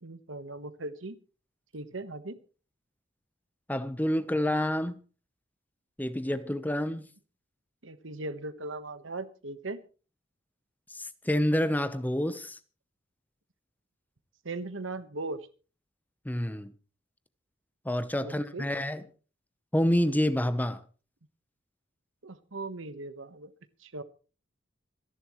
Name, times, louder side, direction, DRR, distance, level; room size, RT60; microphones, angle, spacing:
voice 1, 0.0-1.2 1.7-2.4 7.8-9.8 14.4-15.4 18.2-18.7 22.2-23.5 23.8-24.0, right 2 dB, 70° right, 1.2 m, -38 dB
voice 2, 3.7-5.0 6.0-7.0 10.9-12.6 16.3-16.7 17.8-19.0 19.7-20.8, left 1 dB, 10° left, 0.9 m, -28 dB
26.5 x 11.0 x 3.1 m
head